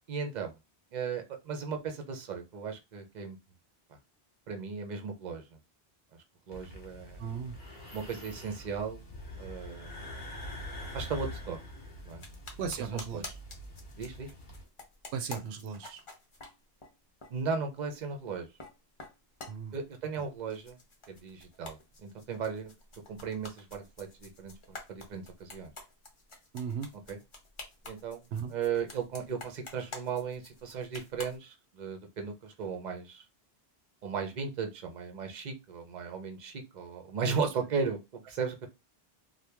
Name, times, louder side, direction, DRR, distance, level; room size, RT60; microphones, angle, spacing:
voice 1, 0.1-0.6 0.9-3.4 4.5-5.4 6.5-7.2 7.9-9.0 9.4-10.0 10.9-11.6 12.0-12.2 13.1-13.2 14.0-14.3 17.3-18.5 19.7-20.8 21.1-22.7 23.1-25.7 27.1-27.2 27.8-28.2 28.5-33.2 34.0-38.7, right 5 dB, 50° right, 0.8 m, -36 dB
sound 1, 6.5-14.6, left 1 dB, 50° left, 1.1 m, -44 dB
voice 2, 7.2-7.6 12.6-13.3 15.1-16.0 19.5-19.7 26.5-26.9 28.3-28.5 37.3-37.4, right 6 dB, 85° right, 0.8 m, -36 dB
sound 2, 12.1-16.9 17.2-17.6 18.2-18.7 19.0-20.2 20.5-31.4, left 3 dB, 35° left, 0.7 m, -49 dB
2.9 x 2.2 x 3.4 m
omnidirectional pair, 1.0 m